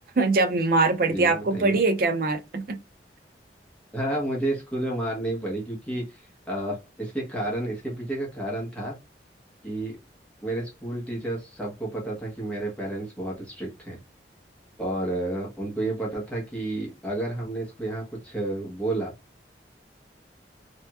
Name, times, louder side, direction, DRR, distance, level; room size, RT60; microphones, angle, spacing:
voice 1, 0.2-2.8, right 3 dB, 55° right, 0.5 m, -22 dB
voice 2, 1.1-1.8 3.9-9.0 9.6-10.0 10.4-14.0 14.8-19.1, right 1 dB, 5° left, 1.0 m, -31 dB
3.3 x 2.9 x 2.2 m
head